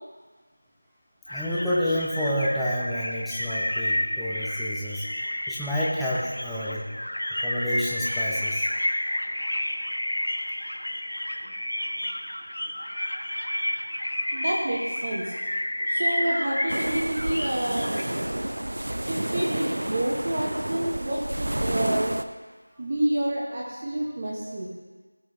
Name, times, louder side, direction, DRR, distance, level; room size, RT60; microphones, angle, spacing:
sound 1, 1.3-18.1, left 1 dB, 75° left, 1.4 m, -30 dB
voice 1, 1.3-5.0 5.5-6.9 7.4-8.7, equal, ahead, -9 dB, 0.6 m, -29 dB
voice 2, 14.3-15.3 15.8-17.9 19.1-22.2 22.8-24.7, right 1 dB, 25° right, -4 dB, 1.1 m, -28 dB
sound 2, 16.7-22.2, right 1 dB, 70° right, 0.6 m, -30 dB
16.5 x 6.4 x 3.1 m, 1.4 s
figure-of-eight pair, 175°, 0 cm